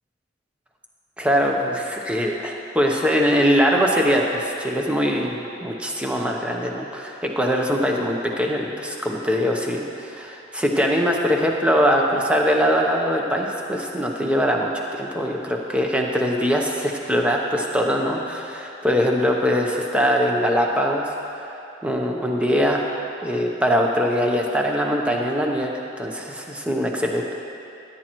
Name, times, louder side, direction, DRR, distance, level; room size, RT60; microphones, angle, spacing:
voice 1, 1.2-21.1 21.4-21.5 21.8-22.8 23.2-25.7 26.0-27.3, equal, 5° right, 0 dB, 0.7 m, -22 dB
14.5 x 8.9 x 3.0 m, 2.8 s
head